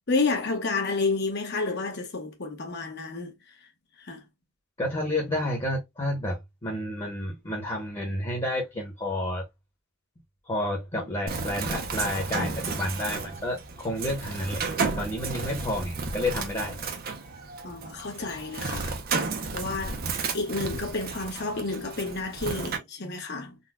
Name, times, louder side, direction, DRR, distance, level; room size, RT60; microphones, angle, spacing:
voice 1, 0.1-3.3 4.0-4.2 11.0-11.1 17.6-18.9 19.5-20.0 20.3-23.6, left 3 dB, 55° left, 0.9 m, -30 dB
voice 2, 4.8-9.4 10.5-16.7, left 1 dB, 25° left, 0.9 m, -30 dB
Bird, 11.3-22.8, right 4 dB, 45° right, 0.6 m, -33 dB
4.0 x 2.2 x 2.3 m
head